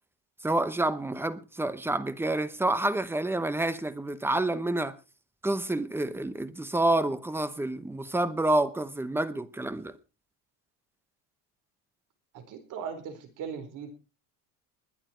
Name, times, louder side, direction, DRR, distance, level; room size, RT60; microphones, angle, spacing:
voice 1, 0.4-4.9 5.4-9.9, right 2 dB, 5° right, 0.8 m, -28 dB
voice 2, 12.5-13.9, right 7 dB, 50° right, 4.4 m, -38 dB
20.5 x 9.9 x 4.4 m
cardioid pair, 150°, 39 cm